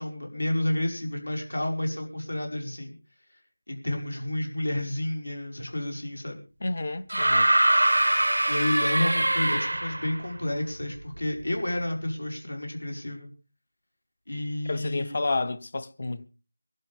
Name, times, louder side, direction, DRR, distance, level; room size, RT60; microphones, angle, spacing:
voice 1, 0.0-3.0 3.7-6.4 8.5-13.3 14.3-15.2, left 1 dB, 90° left, 5.3 m, -30 dB
voice 2, 6.6-7.5 14.7-16.3, left 3 dB, 40° left, 0.8 m, -30 dB
sound 1, 7.1-10.2 11.4-11.5, right 1 dB, 85° right, 0.7 m, -23 dB
23.0 x 12.0 x 3.5 m
figure-of-eight pair, 170°, 0 cm